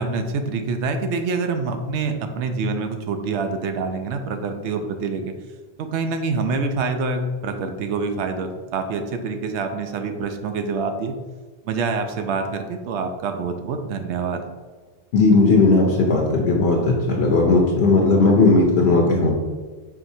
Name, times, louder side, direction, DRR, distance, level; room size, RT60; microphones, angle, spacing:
voice 1, 0.0-5.3 5.8-11.1 11.6-14.4, right 4 dB, 85° right, 6 dB, 0.9 m, -26 dB
voice 2, 15.1-19.3, left 3 dB, 75° left, 0 dB, 0.9 m, -16 dB
4.8 x 3.7 x 2.7 m, 1.4 s
omnidirectional pair, 1.1 m